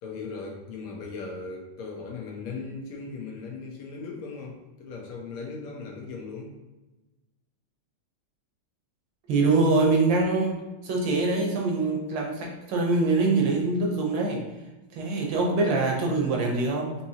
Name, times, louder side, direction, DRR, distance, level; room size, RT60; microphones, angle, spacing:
voice 1, 0.0-6.5, left 4 dB, 80° left, 0 dB, 1.7 m, -38 dB
voice 2, 9.3-14.5 14.9-17.0, right 3 dB, 70° right, -1 dB, 1.4 m, -24 dB
5.0 x 2.8 x 2.7 m, 1.1 s
omnidirectional pair, 2.3 m